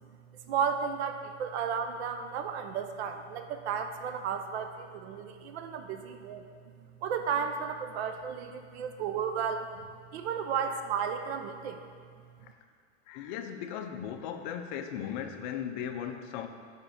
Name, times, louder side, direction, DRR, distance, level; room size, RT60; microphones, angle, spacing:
voice 1, 0.5-6.4 7.0-9.7 10.1-11.8, right 7 dB, 60° right, 7 dB, 0.6 m, -33 dB
voice 2, 13.1-16.5, left 9 dB, 40° left, 6 dB, 0.5 m, -37 dB
4.9 x 4.3 x 4.9 m, 2.1 s
hypercardioid pair, 135°, 37 cm